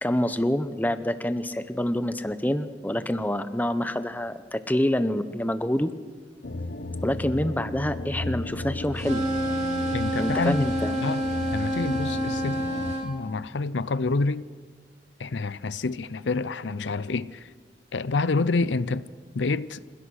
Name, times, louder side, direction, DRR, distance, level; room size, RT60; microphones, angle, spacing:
voice 1, 0.0-5.9 7.0-9.3 10.2-10.9 13.2-13.4, left 1 dB, 10° left, 0.8 m, -27 dB
sound 1, 6.4-12.9, left 2 dB, 65° left, 1.0 m, -34 dB
sound 2, 9.0-13.1, right 1 dB, 40° right, 2.9 m, -28 dB
voice 2, 9.9-10.6 11.0-11.2 11.5-12.7 13.0-14.4 15.2-17.5 17.9-19.1 19.3-19.8, left 3 dB, 85° left, 0.6 m, -27 dB
27.0 x 16.5 x 6.4 m
head